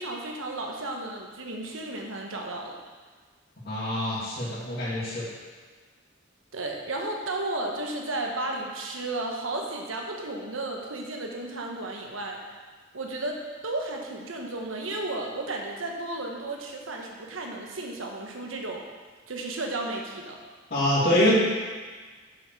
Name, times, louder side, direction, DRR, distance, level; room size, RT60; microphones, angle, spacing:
voice 1, 0.0-2.7 6.5-12.4 12.9-18.9 19.3-20.4, right 2 dB, 85° right, 1 dB, 1.2 m, -33 dB
voice 2, 3.6-5.2 20.7-21.3, left 1 dB, 50° left, -10 dB, 2.8 m, -25 dB
7.5 x 6.4 x 4.9 m, 1.4 s
head